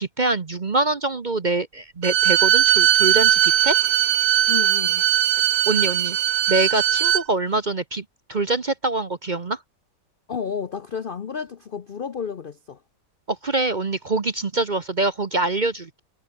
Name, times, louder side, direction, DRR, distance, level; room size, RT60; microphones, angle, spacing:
voice 1, 0.0-3.8 5.5-6.2 6.5-9.6 13.3-16.0, right 2 dB, 35° right, 0.9 m, -24 dB
Bowed string instrument, 2.0-7.2, right 12 dB, 65° right, 1.2 m, -19 dB
voice 2, 4.5-5.0 10.3-12.8, left 6 dB, 55° left, 0.6 m, -31 dB
omnidirectional pair, 1.9 m